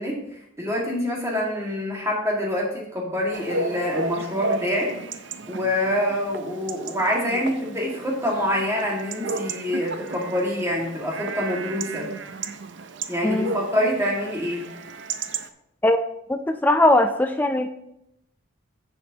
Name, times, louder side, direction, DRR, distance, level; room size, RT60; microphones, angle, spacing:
voice 1, 0.0-4.9 5.5-12.1 13.1-14.7, left 1 dB, 15° right, -3 dB, 1.9 m, -26 dB
Chatter / Bark / Livestock farm animals working animals, 3.3-15.5, right 3 dB, 65° right, 0.5 m, -33 dB
voice 2, 16.3-17.7, left 1 dB, 10° left, 5 dB, 0.4 m, -20 dB
10.5 x 7.1 x 2.9 m, 0.78 s
head